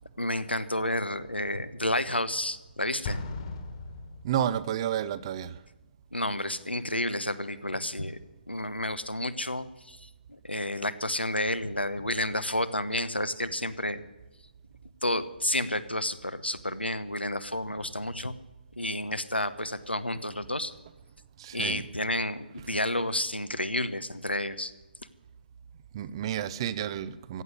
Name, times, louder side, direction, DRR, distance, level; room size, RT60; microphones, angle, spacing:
voice 1, 0.2-3.2 6.1-8.2 8.5-14.0 15.0-18.3 18.8-20.7 21.5-24.7, left 1 dB, 90° left, 12 dB, 1.1 m, -30 dB
Explosion, 3.0-4.8, left 3 dB, 35° left, 1.7 m, -37 dB
voice 2, 4.2-5.6 21.4-21.8 25.9-27.4, right 10 dB, 30° right, 17 dB, 0.6 m, -31 dB
15.5 x 8.0 x 9.8 m, 1.1 s
figure-of-eight pair, 140°, 6 cm